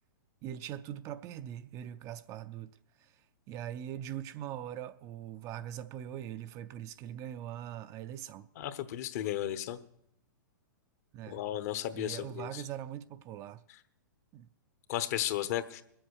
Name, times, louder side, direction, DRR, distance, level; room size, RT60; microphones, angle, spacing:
voice 1, 0.4-2.7 3.0-3.1 3.5-8.5 11.1-11.4 11.9-13.6 14.3-14.5, right 11 dB, 30° right, 0.5 m, -41 dB
voice 2, 8.6-9.8 11.3-12.6 14.9-15.8, left 12 dB, 50° left, 1.0 m, -34 dB
20.5 x 7.8 x 6.4 m
hypercardioid pair, 130°, 11 cm